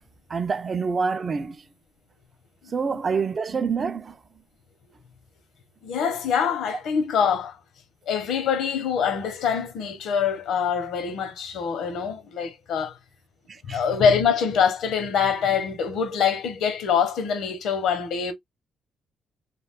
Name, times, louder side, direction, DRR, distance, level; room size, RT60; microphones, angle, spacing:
voice 1, 0.3-1.6 2.7-4.1 13.5-13.8, right 5 dB, 40° right, 0.3 m, -26 dB
voice 2, 5.8-7.6 8.1-12.9 13.6-18.3, left 7 dB, 80° left, 0.7 m, -24 dB
2.3 x 2.2 x 3.4 m
cardioid pair, 90°, 0 cm